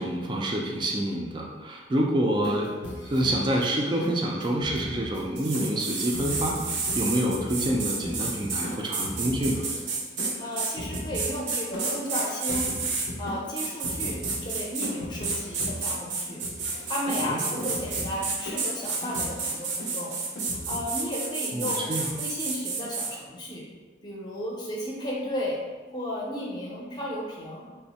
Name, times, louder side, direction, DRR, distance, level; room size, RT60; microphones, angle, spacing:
voice 1, 0.0-2.7 3.0-9.6 17.2-17.7 21.5-22.1, right 1 dB, 25° right, -1 dB, 0.3 m, -27 dB
sound 1, 2.3-20.8, left 1 dB, 75° left, 0.5 m, -38 dB
sound 2, 5.4-13.1 13.6-14.9 15.2-23.1, right 4 dB, 80° right, 0.6 m, -31 dB
voice 2, 10.4-12.8 13.2-20.2 20.5-21.9 22.2-23.7 24.0-25.6 25.9-27.7, equal, 25° left, -4 dB, 0.6 m, -34 dB
3.3 x 2.0 x 4.0 m, 1.3 s
head